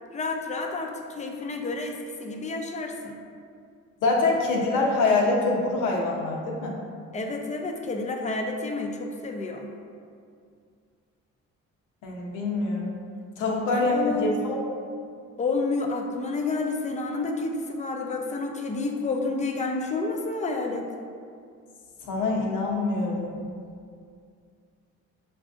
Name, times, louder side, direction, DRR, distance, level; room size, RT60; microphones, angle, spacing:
voice 1, 0.1-3.2 7.1-9.7 13.7-14.4 15.4-20.9, left 3 dB, 25° left, 3 dB, 0.5 m, -30 dB
voice 2, 4.0-6.7 12.0-13.0 13.4-14.6 22.0-23.3, left 3 dB, 85° left, -1 dB, 0.8 m, -25 dB
6.1 x 2.5 x 2.4 m, 2.2 s
cardioid pair, 90°, 30 cm